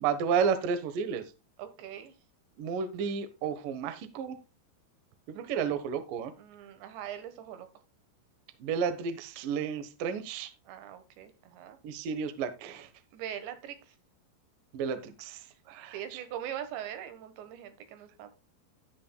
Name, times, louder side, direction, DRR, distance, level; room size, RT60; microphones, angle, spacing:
voice 1, 0.0-1.2 2.6-4.4 5.3-6.3 8.6-10.5 11.8-12.9 14.7-15.4 15.7-16.0, right 6 dB, 65° right, 10 dB, 2.4 m, -31 dB
voice 2, 1.6-2.1 6.4-7.7 10.7-11.8 13.1-14.0 15.9-18.3, right 10 dB, 85° right, 10 dB, 3.6 m, -41 dB
11.5 x 9.9 x 2.2 m, 0.27 s
omnidirectional pair, 5.0 m